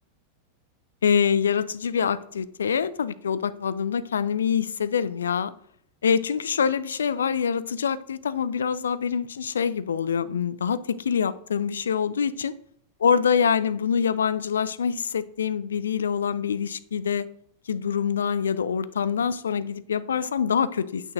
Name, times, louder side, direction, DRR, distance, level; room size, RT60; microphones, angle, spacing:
voice 1, 1.0-5.5 6.0-12.5 13.0-17.3 17.7-21.1, left 7 dB, 70° left, 0.4 m, -25 dB
8.9 x 8.4 x 2.6 m
figure-of-eight pair, 90°, 0 cm